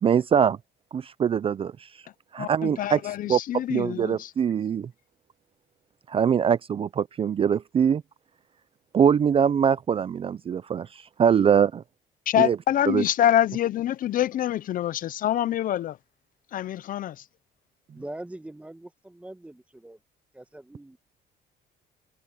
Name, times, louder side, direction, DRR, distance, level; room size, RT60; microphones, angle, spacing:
voice 1, 0.0-0.6 0.9-1.9 2.3-3.0 3.3-3.4 3.7-4.9 6.1-8.0 8.9-11.8 12.4-12.6 12.9-13.0, right 7 dB, 35° right, 0.5 m, -23 dB
voice 2, 2.4-4.3 12.3-16.0 16.5-17.2, left 11 dB, 55° left, 0.6 m, -25 dB
voice 3, 17.9-20.0 20.3-21.0, right 1 dB, 5° right, 1.3 m, -42 dB
cardioid pair, 110°, 17 cm